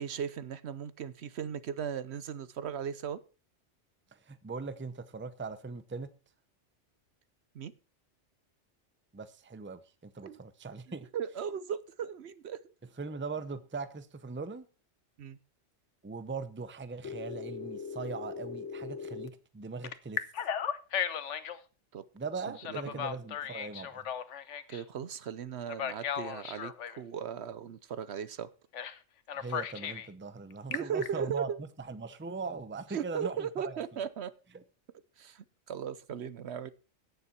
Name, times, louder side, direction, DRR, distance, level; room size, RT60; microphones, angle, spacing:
voice 1, 0.0-3.2 7.5-7.7 10.2-10.4 11.1-12.7 15.2-15.4 21.9-22.0 22.5-23.1 24.7-28.5 30.7-31.6 32.9-34.3 35.2-36.7, right 8 dB, 65° right, 1.0 m, -37 dB
voice 2, 4.1-6.1 9.1-11.1 13.0-14.7 16.0-20.2 22.1-24.1 29.3-33.8 34.5-34.6, right 4 dB, 15° right, 0.6 m, -40 dB
Telephone, 17.0-19.3 19.8-21.6 22.6-24.8 25.7-27.0 28.7-29.0 29.3-30.1 30.5-31.1, left 8 dB, 80° left, 1.2 m, -36 dB
17.5 x 7.0 x 4.4 m
omnidirectional pair, 1.2 m